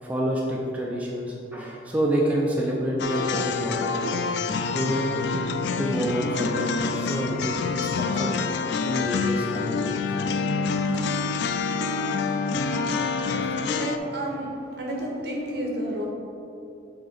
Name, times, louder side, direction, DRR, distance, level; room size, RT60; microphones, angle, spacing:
voice 1, 0.0-4.2 4.7-5.2 5.8-8.3 8.8-10.0, equal, 10° right, -4 dB, 0.5 m, -28 dB
sound 1, 3.0-14.0, left 4 dB, 65° left, 0.3 m, -27 dB
voice 2, 13.0-16.1, right 1 dB, 65° right, -2 dB, 1.4 m, -32 dB
7.7 x 3.8 x 4.1 m, 2.7 s
head